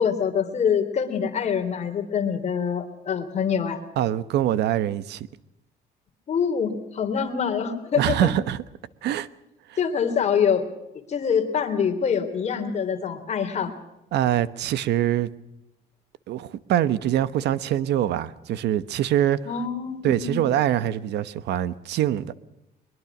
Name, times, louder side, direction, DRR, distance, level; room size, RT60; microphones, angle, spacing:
voice 1, 0.0-3.8 6.3-8.3 9.8-10.6 11.1-13.7 19.5-20.4, left 7 dB, 40° left, 3.4 m, -25 dB
voice 2, 4.0-5.3 8.0-8.6 9.0-9.3 9.7-9.8 14.1-15.3 16.3-19.4 20.0-22.3, right 11 dB, 80° right, 1.1 m, -24 dB
22.5 x 22.5 x 6.1 m
cardioid pair, 145°, 17 cm